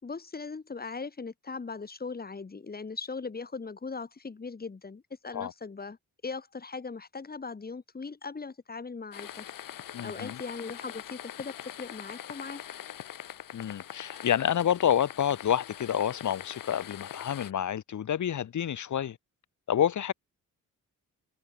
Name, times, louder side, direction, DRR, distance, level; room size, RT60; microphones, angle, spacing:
voice 1, 0.0-6.0 6.2-9.5 10.0-12.6, left 4 dB, 30° left, 4.0 m, -39 dB
sound 1, 9.1-17.5, left 11 dB, 85° left, 2.3 m, -43 dB
voice 2, 9.9-10.4 13.5-19.2 19.7-20.1, left 9 dB, 60° left, 1.7 m, -28 dB
wide cardioid pair, 140°, 32 cm